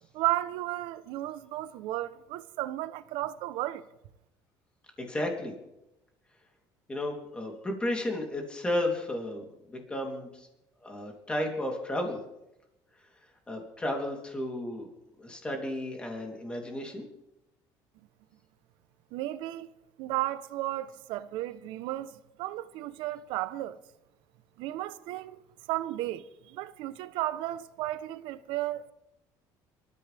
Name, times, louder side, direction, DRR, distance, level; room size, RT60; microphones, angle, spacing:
voice 1, 0.1-3.9 19.1-19.7 20.0-23.8 24.6-25.4 25.7-28.9, right 15 dB, 75° right, 1.0 m, -34 dB
voice 2, 5.0-5.6 6.9-10.5 10.8-12.2 13.5-14.9 15.2-17.1, left 1 dB, 10° left, 3.4 m, -33 dB
27.0 x 14.0 x 3.6 m
cardioid pair, 160°, 8 cm